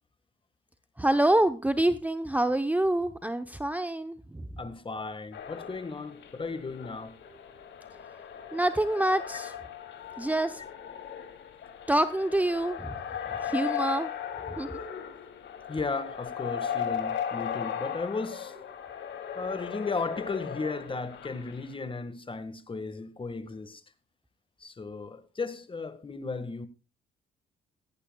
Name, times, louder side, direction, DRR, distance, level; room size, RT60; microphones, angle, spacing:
voice 1, 1.0-4.2 8.5-9.5 10.2-10.6 11.9-13.0 13.4-14.1 14.6-14.7, right 1 dB, 10° right, 0.8 m, -26 dB
voice 2, 4.6-7.1 15.7-18.6 19.3-23.8 24.6-26.7, left 4 dB, 25° left, 1.6 m, -35 dB
sound 1, 5.3-21.7, left 8 dB, 65° left, 2.8 m, -37 dB
16.5 x 14.0 x 2.3 m
cardioid pair, 90°, 20 cm